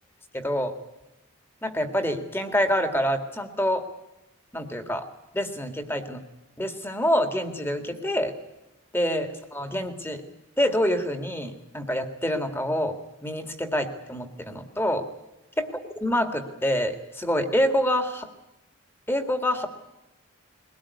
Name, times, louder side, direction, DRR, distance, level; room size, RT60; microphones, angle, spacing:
voice 1, 0.3-0.7 1.6-3.8 4.5-5.1 5.3-6.2 6.6-8.3 8.9-10.2 10.6-13.0 13.2-15.1 15.6-15.7 16.0-18.3 19.1-19.7, equal, 10° left, 8 dB, 2.0 m, -26 dB
22.5 x 18.0 x 9.6 m, 0.96 s
head